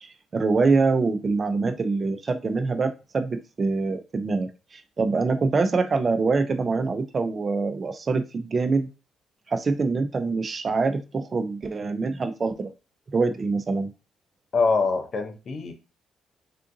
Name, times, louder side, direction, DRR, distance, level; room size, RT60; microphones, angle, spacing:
voice 1, 0.0-8.9 9.5-12.7 13.1-13.9, right 4 dB, 35° right, 0.4 m, -25 dB
voice 2, 14.5-15.7, left 4 dB, 50° left, 0.6 m, -24 dB
3.6 x 2.5 x 2.5 m
cardioid pair, 90°, 0 cm